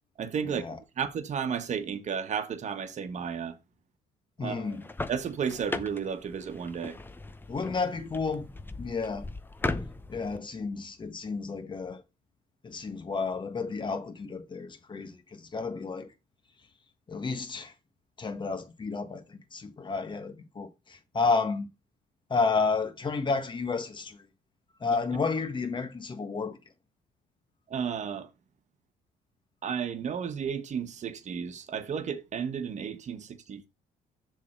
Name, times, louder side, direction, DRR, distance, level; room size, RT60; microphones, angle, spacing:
voice 1, 0.2-3.6 4.4-4.8 5.1-7.0 27.7-28.3 29.6-33.7, right 7 dB, 45° right, 1.4 m, -33 dB
voice 2, 4.4-4.9 7.5-8.5 8.8-9.2 10.1-12.0 12.6-16.1 17.1-17.7 18.2-21.7 22.3-24.2 24.8-26.6, left 4 dB, 30° left, 1.6 m, -31 dB
sound 1, 4.7-10.4, left 2 dB, 10° left, 0.8 m, -38 dB
7.2 x 3.9 x 6.6 m
cardioid pair, 110°, 17 cm